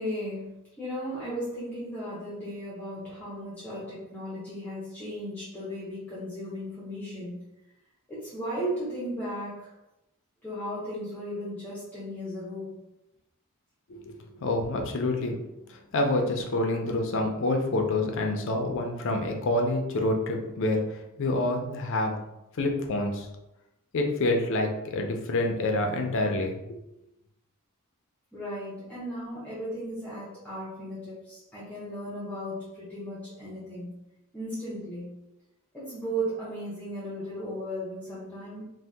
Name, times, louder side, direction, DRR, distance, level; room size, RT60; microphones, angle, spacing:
voice 1, 0.0-7.4 8.1-9.7 10.4-12.8 28.3-33.9 34.3-35.1 35.7-38.6, equal, 5° left, -9 dB, 0.7 m, -36 dB
voice 2, 14.4-15.3 15.7-20.8 21.2-22.1 22.6-23.3 23.9-26.8, left 2 dB, 60° left, 3 dB, 0.5 m, -27 dB
2.7 x 2.1 x 3.3 m, 0.90 s
head